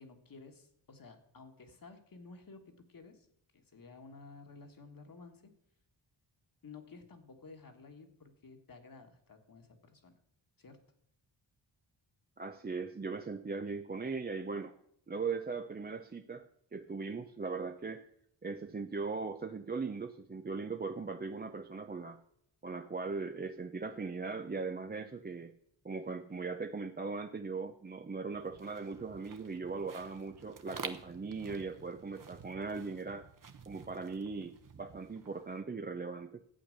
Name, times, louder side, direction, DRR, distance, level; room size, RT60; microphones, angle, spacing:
voice 1, 0.0-3.3 3.5-5.5 6.6-10.1 10.6-10.8, left 4 dB, 45° left, 5 dB, 1.7 m, -53 dB
voice 2, 12.4-14.8 15.1-18.0 18.4-22.2 22.6-25.5 25.8-33.3 33.7-36.4, right 4 dB, 20° right, 7 dB, 0.5 m, -39 dB
sound 1, 28.3-35.6, right 6 dB, 45° right, 1.0 m, -50 dB
12.0 x 8.5 x 6.5 m, 0.71 s
wide cardioid pair, 125°, 46 cm